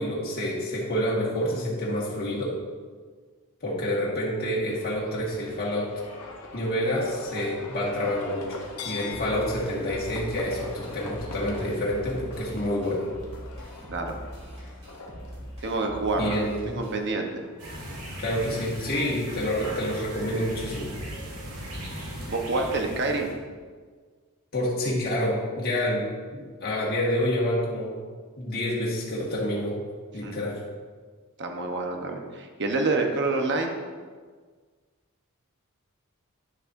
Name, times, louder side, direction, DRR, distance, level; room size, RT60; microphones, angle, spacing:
voice 1, 0.0-2.5 3.6-5.9 6.5-13.0 16.2-16.8 18.2-21.0 24.5-27.9 28.4-29.8 30.1-30.6, left 1 dB, 45° left, -6 dB, 1.6 m, -28 dB
Livestock farm animals working animals, 4.7-21.2, left 3 dB, 90° left, 1.1 m, -44 dB
sound 1, 9.1-17.1, equal, 30° right, 2.1 m, -42 dB
voice 2, 15.6-17.3 22.3-23.3 30.2-30.4 31.4-33.8, right 3 dB, 55° right, 3 dB, 1.0 m, -27 dB
sound 2, 17.6-23.3, equal, 85° right, 2.2 m, -38 dB
10.5 x 6.6 x 2.6 m, 1.5 s
head